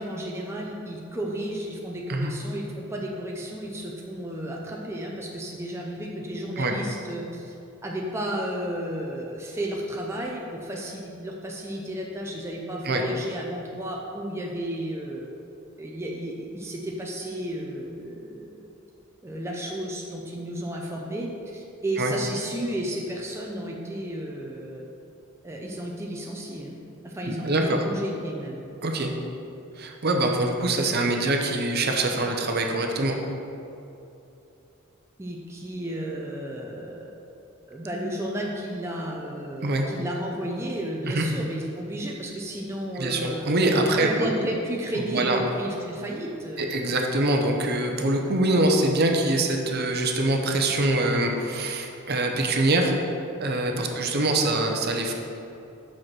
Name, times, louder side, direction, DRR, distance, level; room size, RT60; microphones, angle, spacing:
voice 1, 0.0-7.6 7.8-15.3 15.8-18.7 19.2-24.8 25.4-26.8 27.0-28.7 35.2-37.1 37.7-43.4 43.9-46.9 53.7-53.9, right 1 dB, 15° right, -2 dB, 0.5 m, -33 dB
voice 2, 27.3-27.8 28.8-29.1 29.8-33.1 39.6-39.9 41.0-41.2 43.0-44.3 44.9-45.4 46.6-52.9 53.4-55.1, right 2 dB, 50° right, 2 dB, 0.7 m, -24 dB
5.7 x 5.3 x 6.0 m, 2.8 s
head